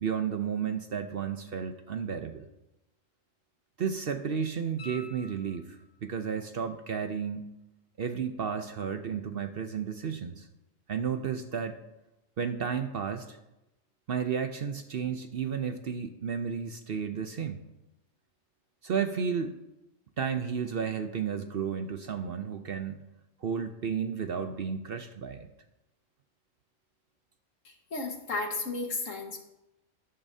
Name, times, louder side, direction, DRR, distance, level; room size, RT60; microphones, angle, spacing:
voice 1, 0.0-2.5 3.8-7.5 8.0-10.5 10.9-11.8 12.4-13.4 14.1-17.6 18.8-19.6 20.2-23.0 23.4-25.5, right 7 dB, 55° right, 8 dB, 0.8 m, -32 dB
sound 1, 4.8-6.1 8.9-9.0, left 2 dB, 40° left, 1.6 m, -48 dB
voice 2, 27.6-29.4, left 3 dB, 70° left, 3 dB, 1.9 m, -34 dB
12.5 x 12.0 x 2.7 m, 0.92 s
omnidirectional pair, 1.4 m